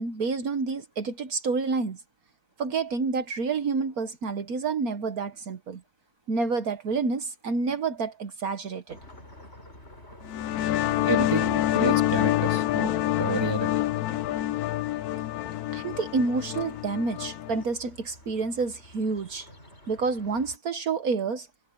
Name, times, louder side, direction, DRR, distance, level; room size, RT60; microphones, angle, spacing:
voice 1, 0.0-2.0 2.6-5.8 6.3-9.0 15.7-19.5 19.9-21.5, right 4 dB, 70° right, 1.7 m, -29 dB
sound 1, 8.9-20.6, left 1 dB, 45° left, 7.2 m, -50 dB
sound 2, 10.2-17.6, left 14 dB, 75° left, 1.1 m, -27 dB
voice 2, 11.1-13.9, right 2 dB, 15° right, 2.9 m, -30 dB
omnidirectional pair, 1.6 m